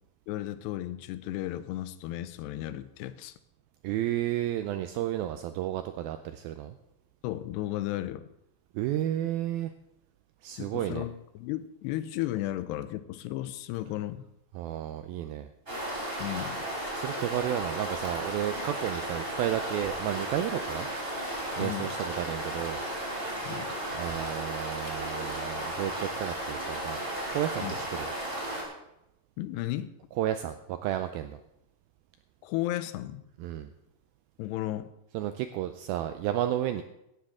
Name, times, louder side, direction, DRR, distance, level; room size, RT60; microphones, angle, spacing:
voice 1, 0.3-3.4 7.2-8.3 10.6-14.2 16.2-16.6 21.6-21.9 23.5-23.7 27.6-27.8 29.4-29.9 32.4-33.2 34.4-34.9, left 14 dB, 90° left, 13 dB, 2.8 m, -34 dB
voice 2, 3.8-6.8 8.7-9.7 10.4-11.1 14.6-15.5 17.0-20.9 21.6-22.8 23.9-27.0 27.3-28.1 30.2-31.4 33.4-33.7 35.1-36.8, right 12 dB, 85° right, 9 dB, 2.1 m, -32 dB
sound 1, 15.7-28.6, right 1 dB, 15° right, 2.9 m, -34 dB
17.0 x 12.0 x 3.6 m, 0.85 s
omnidirectional pair, 4.8 m